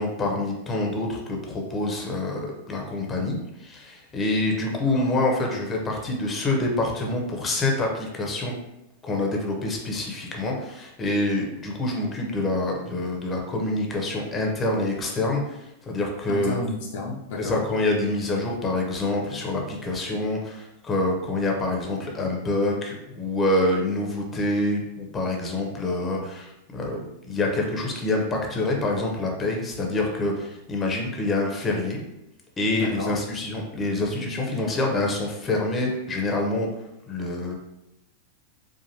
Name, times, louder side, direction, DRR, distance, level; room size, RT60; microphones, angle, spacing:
voice 1, 0.0-8.5 9.0-16.6 17.4-32.0 32.6-36.7 37.1-37.5, left 2 dB, 20° left, 0 dB, 0.8 m, -26 dB
voice 2, 16.3-17.6 32.7-33.1, left 2 dB, 50° left, -3 dB, 0.6 m, -31 dB
4.0 x 2.5 x 2.9 m, 0.89 s
figure-of-eight pair, 90°, 0 cm